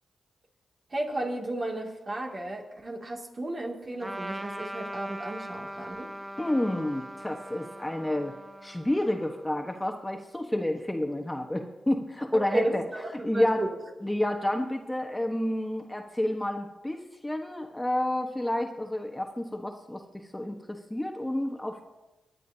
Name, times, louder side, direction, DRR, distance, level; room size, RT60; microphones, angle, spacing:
voice 1, 0.9-6.1 12.5-13.8 14.0-14.1, right 1 dB, 45° right, 0 dB, 2.5 m, -33 dB
Trumpet, 4.0-9.9, right 1 dB, 15° right, 1.2 m, -41 dB
voice 2, 6.4-8.3 8.6-12.8 13.2-13.6 14.0-21.8, left 1 dB, 15° left, 4 dB, 1.3 m, -30 dB
25.5 x 9.3 x 2.8 m, 1.0 s
supercardioid pair, 40°, 0 cm